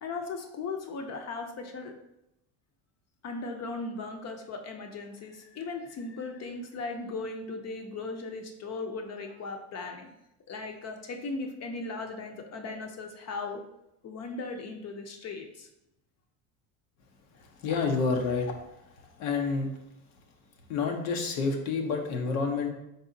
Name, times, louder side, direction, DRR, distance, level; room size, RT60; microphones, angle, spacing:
voice 1, 0.0-1.9 3.2-10.1 10.5-13.6 14.0-15.7, left 3 dB, 40° left, 4 dB, 0.7 m, -37 dB
voice 2, 17.6-18.5 19.2-19.7 20.7-22.7, left 4 dB, 80° left, 2 dB, 0.8 m, -28 dB
4.1 x 3.4 x 2.6 m, 0.85 s
hypercardioid pair, 80°, 42 cm